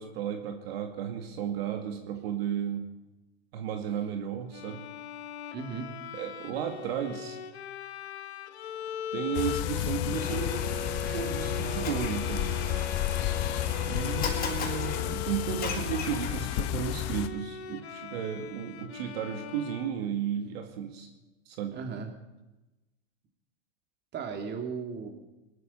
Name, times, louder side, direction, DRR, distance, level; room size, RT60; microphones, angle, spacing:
voice 1, 0.0-2.9 3.5-4.8 6.1-7.4 9.1-10.6 11.0-12.6 13.8-21.1 21.5-21.8, right 9 dB, 70° right, 4 dB, 2.2 m, -34 dB
Bowed string instrument, 4.5-20.6, left 8 dB, 85° left, 1.2 m, -41 dB
voice 2, 5.5-6.0 21.7-22.1 24.1-25.1, right 5 dB, 30° right, 4 dB, 2.7 m, -36 dB
sound 1, 9.3-17.3, left 14 dB, 50° left, 1.0 m, -32 dB
Domestic sounds home sounds, 10.1-16.6, left 3 dB, 25° left, 4.1 m, -37 dB
20.5 x 12.5 x 5.5 m, 1.0 s
hypercardioid pair, 110°, 32 cm